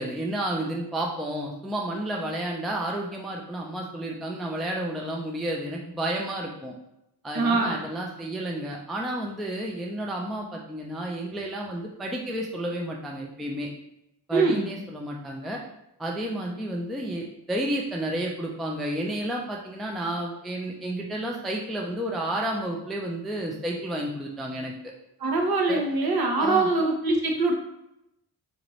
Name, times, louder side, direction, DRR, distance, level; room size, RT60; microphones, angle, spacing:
voice 1, 0.0-6.7 7.2-13.7 14.3-15.6 16.0-24.7 25.7-25.8 26.4-26.7, right 1 dB, ahead, -1 dB, 0.4 m, -31 dB
voice 2, 7.3-7.8 14.3-14.7 25.2-27.5, right 3 dB, 60° right, 1 dB, 0.9 m, -23 dB
3.9 x 2.6 x 3.1 m, 0.87 s
wide cardioid pair, 105°, 40 cm